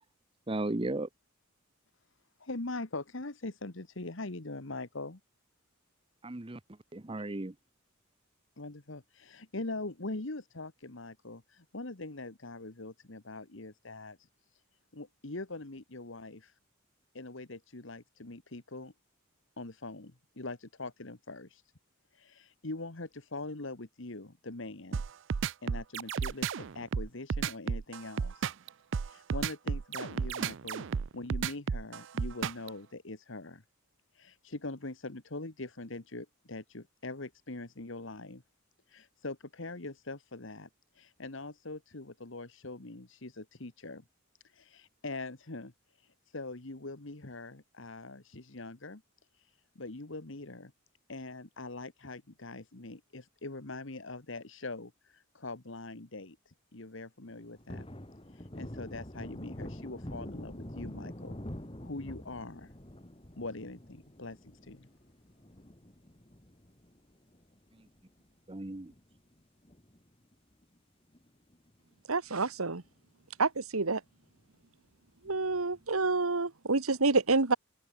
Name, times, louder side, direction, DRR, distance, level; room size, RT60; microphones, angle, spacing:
voice 1, 0.5-1.1 6.2-6.6 6.9-7.5 68.5-68.9, right 2 dB, 25° right, 0.8 m, -35 dB
voice 2, 2.4-5.2 8.6-14.6 14.9-16.6 17.1-18.9 19.6-21.6 22.1-25.0 25.6-28.5 29.0-30.9 31.1-33.6 34.1-38.4 38.9-44.0 44.4-49.0 49.3-50.7 51.1-57.9 58.3-61.3 61.8-62.7 63.4-64.9, left 2 dB, 60° left, 1.6 m, -43 dB
sound 1, 24.9-32.7, right 6 dB, 60° right, 0.4 m, -33 dB
Thunder, 57.3-68.0 68.4-68.5 68.8-70.3 70.6-70.8 71.1-71.9 72.3-72.4 72.8-72.9 75.2-75.8, left 1 dB, 25° left, 2.2 m, -46 dB
voice 3, 72.1-72.8 73.4-74.0 75.2-77.6, right 3 dB, 85° right, 1.6 m, -28 dB
open air
head